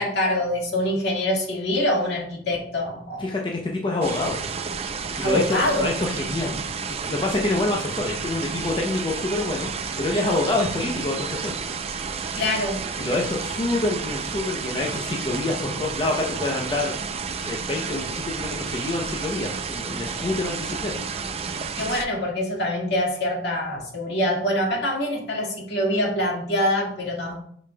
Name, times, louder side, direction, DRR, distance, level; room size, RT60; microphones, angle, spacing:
voice 1, 0.0-3.3 5.2-5.9 12.4-12.8 21.8-27.4, left 1 dB, 60° left, -2 dB, 1.9 m, -24 dB
voice 2, 3.2-4.4 5.2-6.6 6.9-9.7 10.0-11.6 13.0-17.0 17.4-20.9, left 2 dB, 25° left, -1 dB, 0.7 m, -27 dB
sound 1, 4.0-22.0, right 5 dB, 35° right, 0.5 m, -31 dB
8.4 x 5.1 x 2.3 m, 0.64 s
head